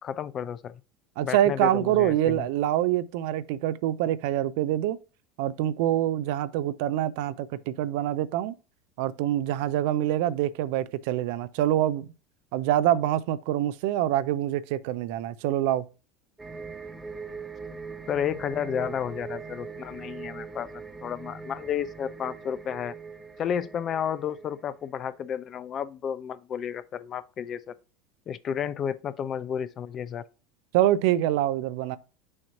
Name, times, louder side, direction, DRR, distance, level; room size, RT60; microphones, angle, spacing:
voice 1, 0.0-0.8 1.2-2.5 18.1-20.7 21.0-22.9 23.4-27.7 28.3-30.2, left 8 dB, 40° left, 0.5 m, -32 dB
voice 2, 1.2-5.0 5.4-8.5 9.0-12.1 12.5-15.8 30.7-32.0, right 12 dB, 60° right, 0.4 m, -25 dB
sound 1, 16.4-24.8 25.1-25.2, right 5 dB, 15° right, 0.6 m, -41 dB
6.4 x 2.9 x 5.7 m
hypercardioid pair, 80°, 0 cm